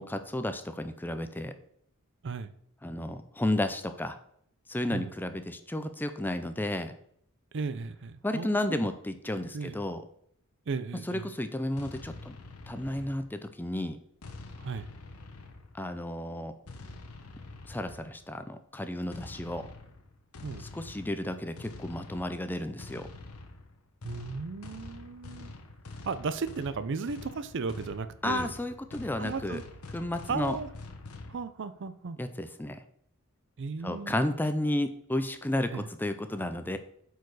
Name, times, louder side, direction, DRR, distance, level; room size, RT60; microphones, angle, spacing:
voice 1, 0.0-1.5 2.8-4.2 4.7-6.9 8.2-10.0 11.1-12.4 12.7-14.0 15.7-16.5 17.7-19.7 20.6-23.1 28.2-29.6 29.9-30.6 32.2-32.8 33.8-36.8, left 1 dB, 10° left, 9 dB, 0.5 m, -32 dB
voice 2, 2.2-2.5 4.9-5.1 7.5-8.9 9.5-9.8 10.7-11.3 14.6-14.9 20.4-20.6 24.0-25.5 26.1-28.5 29.2-29.6 30.3-30.7 31.3-32.2 33.6-34.3 35.7-35.9, right 4 dB, 55° right, 13 dB, 0.5 m, -35 dB
trailer movie, 11.8-13.5 14.2-15.9 16.7-18.3 19.1-31.4, left 2 dB, 90° left, 1.0 m, -46 dB
8.3 x 4.6 x 4.8 m, 0.68 s
head